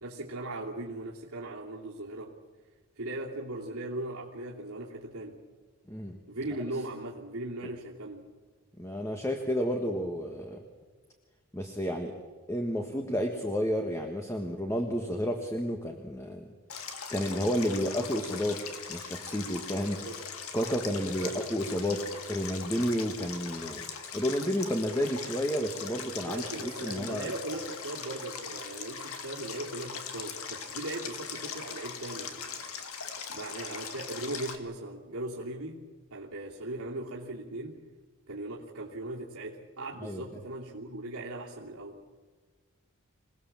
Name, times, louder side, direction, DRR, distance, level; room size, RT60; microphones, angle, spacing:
voice 1, 0.0-2.3 3.0-5.4 6.3-8.3 19.9-20.2 20.5-20.6 20.9-21.4 26.2-32.6 33.3-35.8 36.1-37.8 38.3-42.0, right 2 dB, 90° right, -5 dB, 3.0 m, -39 dB
voice 2, 8.8-10.6 11.5-12.2 12.5-16.5 17.1-18.6 18.9-20.0 20.5-22.0 22.3-23.8 24.1-27.3 40.0-40.2, equal, 15° left, 3 dB, 1.5 m, -31 dB
Stream, 16.7-34.5, left 6 dB, 80° left, 2.2 m, -40 dB
27.0 x 19.0 x 7.4 m, 1.4 s
head